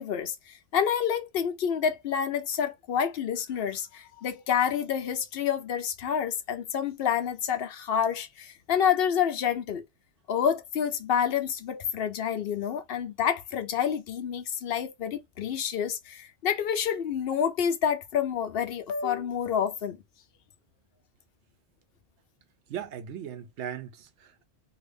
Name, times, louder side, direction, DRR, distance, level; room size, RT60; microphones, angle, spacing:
voice 1, 0.0-9.8 10.3-20.0, left 8 dB, 65° left, 0.8 m, -28 dB
voice 2, 22.7-24.4, right 9 dB, 85° right, 1.0 m, -38 dB
2.7 x 2.5 x 3.2 m
omnidirectional pair, 1.1 m